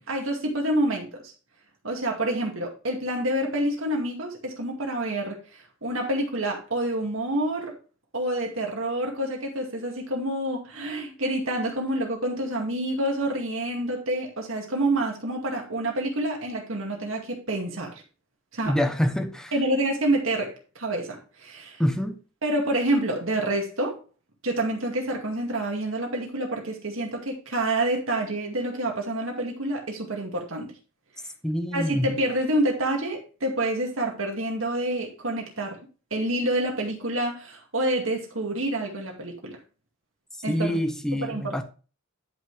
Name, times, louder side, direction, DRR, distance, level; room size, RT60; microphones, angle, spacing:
voice 1, 0.0-1.3 1.8-7.7 8.1-18.0 18.5-18.8 19.5-21.8 22.4-24.0 24.4-30.7 31.2-31.3 31.7-35.8 36.1-39.6 40.4-40.8 41.2-41.6, right 1 dB, 70° right, 2.1 m, -28 dB
voice 2, 18.7-19.5 21.8-22.2 31.4-32.1 40.5-41.6, equal, 5° left, 0.8 m, -26 dB
10.5 x 5.3 x 3.3 m
head